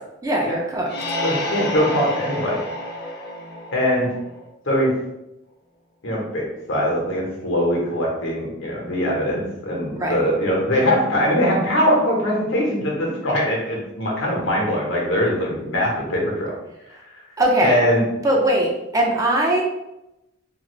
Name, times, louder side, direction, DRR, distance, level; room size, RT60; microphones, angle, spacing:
voice 1, 0.2-0.9 9.9-10.3 17.4-17.8 18.2-19.6, right 1 dB, 15° right, 0 dB, 0.4 m, -20 dB
sound 1, 0.9-4.5, left 1 dB, 55° left, 0.7 m, -29 dB
voice 2, 1.2-2.6 3.7-4.1 4.7-4.9 6.0-16.5 17.6-18.0, equal, 80° left, -3 dB, 0.9 m, -22 dB
2.5 x 2.5 x 3.0 m, 0.92 s
head